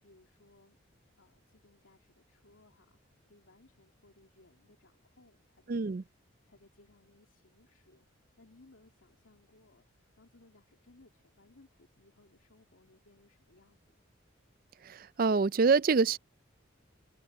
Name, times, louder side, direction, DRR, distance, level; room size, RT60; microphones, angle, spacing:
voice 1, 0.0-0.8 1.2-6.2 6.5-13.8, left 2 dB, 85° left, 2.4 m, -63 dB
voice 2, 5.7-6.0 14.8-16.2, right 4 dB, 45° right, 0.4 m, -26 dB
head